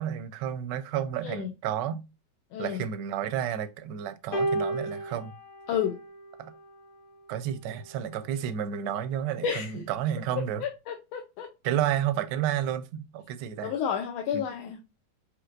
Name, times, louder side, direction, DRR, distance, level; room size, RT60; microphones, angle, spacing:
voice 1, 0.0-2.0 2.6-5.3 6.4-6.5 7.3-10.6 11.6-13.7 14.3-14.4, right 10 dB, 75° right, 1.1 m, -31 dB
sound 1, 4.3-6.8 7.8-8.0, right 2 dB, 55° left, 1.0 m, -33 dB
voice 2, 5.7-6.0 9.4-9.7 10.6-11.5 13.6-14.8, left 8 dB, 85° left, 1.5 m, -31 dB
5.1 x 2.8 x 2.5 m
omnidirectional pair, 2.2 m